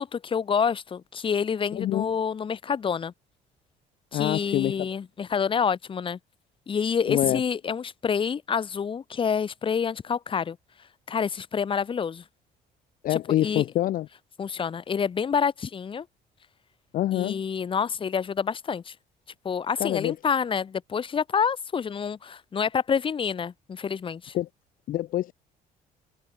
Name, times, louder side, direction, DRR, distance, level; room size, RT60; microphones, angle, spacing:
voice 1, 0.0-3.1 4.1-6.2 6.7-10.6 11.1-12.2 13.1-13.7 14.4-16.1 17.1-18.9 19.4-24.3, left 6 dB, 30° left, 0.9 m, -27 dB
voice 2, 1.7-2.1 4.1-4.9 7.1-7.4 13.0-14.1 16.9-17.4 19.8-20.1 24.3-24.5 24.9-25.3, left 13 dB, 55° left, 0.5 m, -26 dB
cardioid pair, 110°, 17 cm